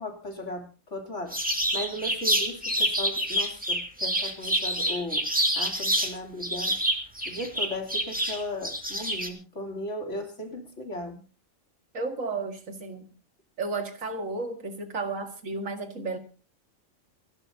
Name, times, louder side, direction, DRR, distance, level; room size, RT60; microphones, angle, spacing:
voice 1, 0.0-5.3 5.6-6.8 7.3-11.2, left 1 dB, 65° left, 3 dB, 3.5 m, -36 dB
sound 1, 1.3-6.1 6.4-9.3, equal, 5° right, 2.2 m, -27 dB
voice 2, 11.9-13.1 13.6-16.2, right 3 dB, 80° right, 6 dB, 2.4 m, -33 dB
29.0 x 11.5 x 2.8 m, 0.35 s
omnidirectional pair, 1.4 m